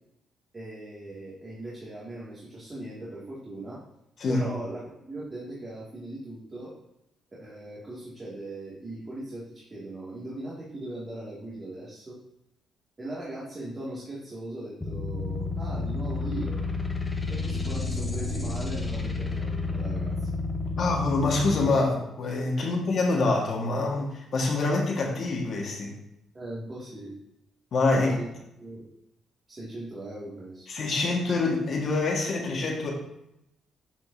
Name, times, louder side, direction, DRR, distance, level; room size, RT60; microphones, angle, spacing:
voice 1, 0.5-3.8 4.3-6.7 7.4-12.2 13.0-16.6 17.3-20.3 22.6-22.7 26.3-27.2 27.9-28.2 28.6-28.8 29.5-30.7, right 1 dB, 30° right, -7 dB, 2.2 m, -39 dB
sound 1, 14.8-21.7, left 3 dB, 15° left, 1.1 m, -30 dB
voice 2, 20.8-25.9 27.7-28.2 30.7-32.9, left 3 dB, 55° left, -1 dB, 1.6 m, -26 dB
8.8 x 5.1 x 2.7 m, 0.83 s
cardioid pair, 90°, 0 cm